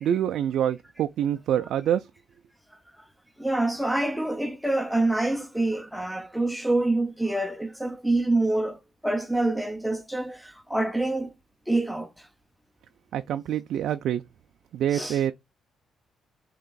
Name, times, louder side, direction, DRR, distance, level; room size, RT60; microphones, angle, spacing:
voice 1, 0.0-2.1 13.1-14.2 14.7-15.3, right 10 dB, 75° right, 0.3 m, -26 dB
voice 2, 3.4-11.4 11.7-12.1 14.9-15.2, right 2 dB, ahead, 0.5 m, -26 dB
7.7 x 2.9 x 2.3 m
cardioid pair, 90°, 0 cm